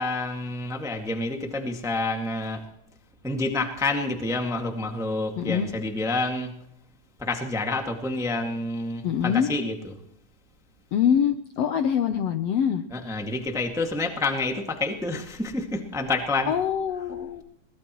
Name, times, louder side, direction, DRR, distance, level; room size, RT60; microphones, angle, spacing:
voice 1, 0.0-2.6 3.2-6.6 7.2-10.0 12.9-16.6, left 2 dB, ahead, 3 dB, 1.0 m, -28 dB
voice 2, 5.4-5.7 9.0-9.5 10.9-12.8 16.5-17.4, left 8 dB, 75° left, 8 dB, 1.5 m, -24 dB
22.5 x 19.5 x 3.1 m, 0.75 s
omnidirectional pair, 3.7 m